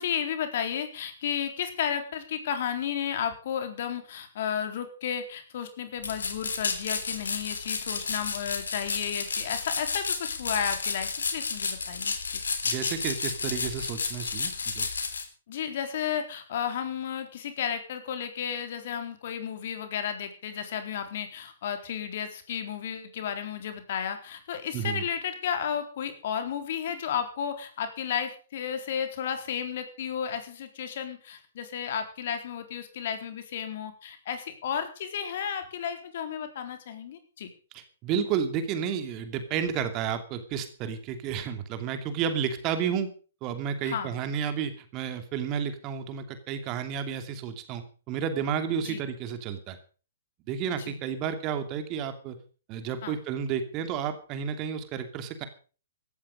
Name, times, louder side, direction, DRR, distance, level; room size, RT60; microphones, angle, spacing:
voice 1, 0.0-12.4 15.5-37.5 43.8-44.1 48.8-49.0 50.8-51.0 53.0-53.2, left 8 dB, 50° left, 7 dB, 3.9 m, -33 dB
sound 1, 6.0-15.2, left 4 dB, 70° left, 3.4 m, -32 dB
voice 2, 12.6-14.9 24.7-25.0 37.7-43.1 43.4-49.8 50.5-52.4 52.7-55.4, right 7 dB, 30° right, 8 dB, 2.6 m, -31 dB
17.0 x 13.5 x 5.3 m, 0.39 s
figure-of-eight pair, 120°, 0 cm